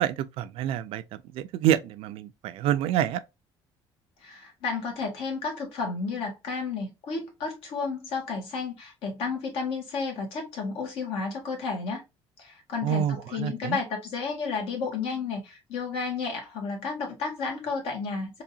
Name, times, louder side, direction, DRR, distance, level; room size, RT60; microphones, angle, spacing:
voice 1, 0.0-3.2 12.8-13.8, right 10 dB, 75° right, 0.5 m, -27 dB
voice 2, 4.2-12.0 12.4-18.4, left 4 dB, 75° left, 1.8 m, -32 dB
3.9 x 2.7 x 2.6 m
cardioid pair, 165°, 10 cm